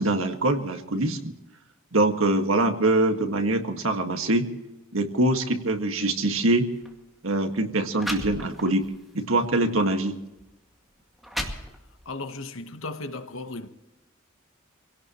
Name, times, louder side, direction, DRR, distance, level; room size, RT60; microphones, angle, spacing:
voice 1, 0.0-1.3 1.9-4.5 4.9-6.7 7.2-8.9 9.1-10.1, right 2 dB, 80° right, 1.8 m, -24 dB
sound 1, 6.7-6.9 7.6-7.7 8.0-8.9 9.4-9.6 10.4-10.5 11.0-12.1, equal, ahead, 2.1 m, -34 dB
voice 2, 12.0-13.7, left 3 dB, 75° left, 1.2 m, -35 dB
25.5 x 17.5 x 3.1 m
head